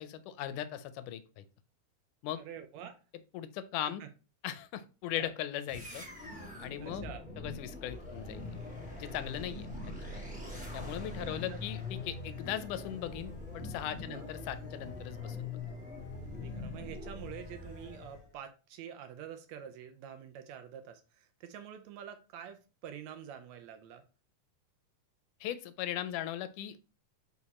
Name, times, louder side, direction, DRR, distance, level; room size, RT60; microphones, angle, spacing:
voice 1, 0.0-1.4 2.2-2.4 3.3-4.0 4.4-6.0 6.6-7.1 7.4-8.4 9.0-10.1 10.7-15.6 25.4-26.8, left 11 dB, 85° left, 13 dB, 2.1 m, -39 dB
voice 2, 2.4-3.0 4.0-4.1 5.1-5.3 6.8-7.2 11.2-11.6 14.1-14.3 16.2-24.0, right 9 dB, 75° right, 7 dB, 1.8 m, -47 dB
sound 1, 5.7-18.3, left 3 dB, 5° right, 1.3 m, -43 dB
5.4 x 4.7 x 4.1 m, 0.32 s
omnidirectional pair, 3.6 m